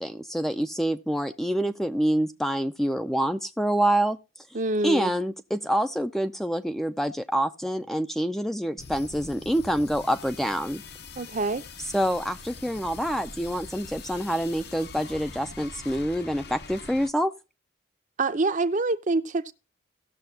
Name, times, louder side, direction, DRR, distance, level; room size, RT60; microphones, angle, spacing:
voice 1, 0.0-4.2 4.8-10.8 11.9-17.3, equal, ahead, 0.4 m, -26 dB
voice 2, 4.5-5.1 11.2-11.6 18.2-19.5, right 3 dB, 40° right, 0.6 m, -26 dB
sound 1, 8.8-17.1, left 4 dB, 55° left, 0.9 m, -43 dB
17.5 x 6.7 x 2.7 m
head